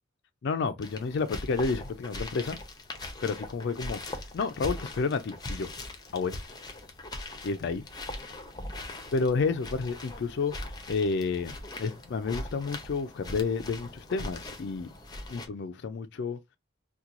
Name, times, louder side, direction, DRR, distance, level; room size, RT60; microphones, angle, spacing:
voice 1, 0.4-2.6 3.2-5.7 6.1-6.4 7.4-7.8 9.1-10.5 10.9-14.9 15.3-16.4, left 4 dB, 60° left, 0.4 m, -30 dB
sound 1, 0.8-15.5, left 1 dB, 20° left, 0.6 m, -41 dB
2.9 x 2.2 x 3.6 m
head